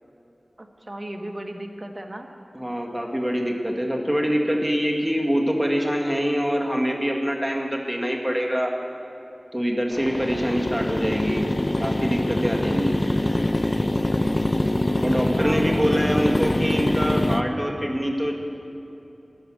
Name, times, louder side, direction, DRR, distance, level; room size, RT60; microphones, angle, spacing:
voice 1, 0.6-2.3 15.2-16.2, right 1 dB, 35° right, 4 dB, 1.5 m, -35 dB
voice 2, 2.5-8.7 9.5-11.5 11.8-13.0 15.0-18.4, equal, 10° right, 1 dB, 2.0 m, -25 dB
sound 1, 9.9-17.4, left 1 dB, 35° left, 0.6 m, -24 dB
15.0 x 11.5 x 6.4 m, 2.9 s
wide cardioid pair, 55°, 0 cm